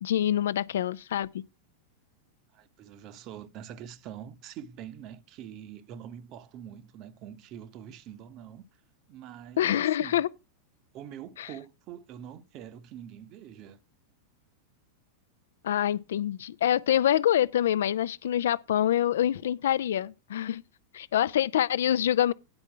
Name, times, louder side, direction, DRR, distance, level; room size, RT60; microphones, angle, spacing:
voice 1, 0.0-1.3 9.6-10.3 11.4-11.5 15.6-20.6 20.9-22.3, left 11 dB, 60° left, 0.5 m, -26 dB
voice 2, 2.5-8.6 9.1-10.3 10.9-13.8, right 9 dB, 40° right, 0.8 m, -45 dB
9.8 x 5.4 x 5.9 m
figure-of-eight pair, 90°, 0 cm